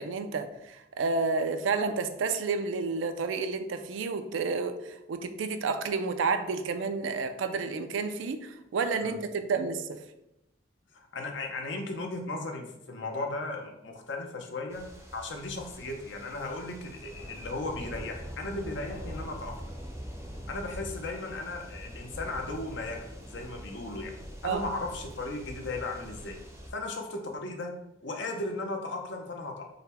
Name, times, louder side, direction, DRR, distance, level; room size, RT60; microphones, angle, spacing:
voice 1, 0.0-9.9 24.4-24.6, right 4 dB, 80° right, 9 dB, 0.4 m, -30 dB
voice 2, 10.9-14.8 15.1-19.5 20.5-24.1 24.4-26.4 26.7-27.7 28.0-29.6, left 2 dB, 70° left, 2 dB, 0.6 m, -36 dB
sound 1, 14.7-26.7, equal, 15° right, 0.5 m, -43 dB
3.9 x 2.1 x 4.1 m, 0.87 s
head